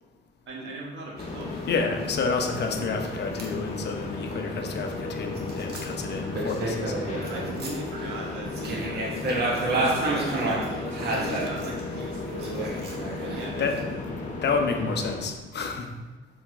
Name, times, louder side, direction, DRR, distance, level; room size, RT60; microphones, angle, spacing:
voice 1, 0.5-1.6 6.9-9.1 9.6-13.7, right 1 dB, 75° right, -2 dB, 1.7 m, -38 dB
sound 1, 1.2-15.2, left 3 dB, 40° left, 1.6 m, -34 dB
sound 2, 1.2-1.6 2.0-2.1 2.4-2.5 3.0-3.1 3.4-3.5 5.4-8.0 8.5-11.8 12.3-13.8, right 2 dB, 55° right, 1.5 m, -30 dB
voice 2, 1.7-6.9 13.6-14.0 14.4-15.9, left 4 dB, 60° left, 4 dB, 1.0 m, -29 dB
6.8 x 4.4 x 3.8 m, 1.3 s
cardioid pair, 90°, 20 cm